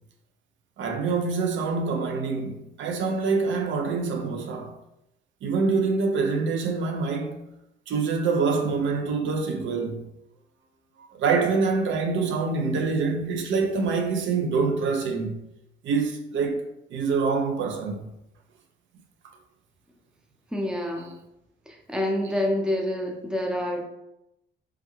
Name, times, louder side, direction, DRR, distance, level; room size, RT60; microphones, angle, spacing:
voice 1, 0.8-4.8 5.4-7.5 7.9-10.1 11.0-15.4 15.8-16.6 16.9-18.1, right 4 dB, 70° right, 0.5 m, -25 dB
voice 2, 20.5-21.1 21.7-23.8, left 1 dB, 5° right, 0.6 m, -27 dB
3.3 x 2.2 x 3.0 m
cardioid pair, 90°, 20 cm